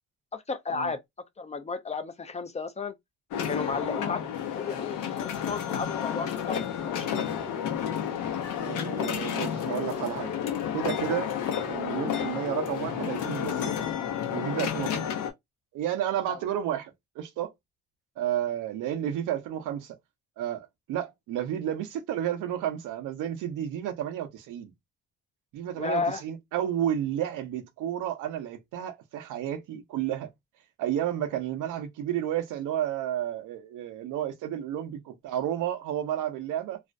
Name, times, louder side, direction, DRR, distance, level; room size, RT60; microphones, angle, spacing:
voice 1, 0.3-1.0 1.4-2.9 3.4-7.1 16.3-16.4 25.8-26.2, left 4 dB, 25° left, 0.4 m, -33 dB
sound 1, 3.3-15.3, left 8 dB, 90° left, 0.7 m, -31 dB
voice 2, 8.6-10.3 10.7-11.3 11.7-13.7 14.3-15.0 15.7-17.5 18.2-20.0 20.4-24.7 25.5-30.3 30.8-36.8, right 11 dB, 90° right, 0.6 m, -31 dB
2.4 x 2.1 x 2.4 m
cardioid pair, 90°, 30 cm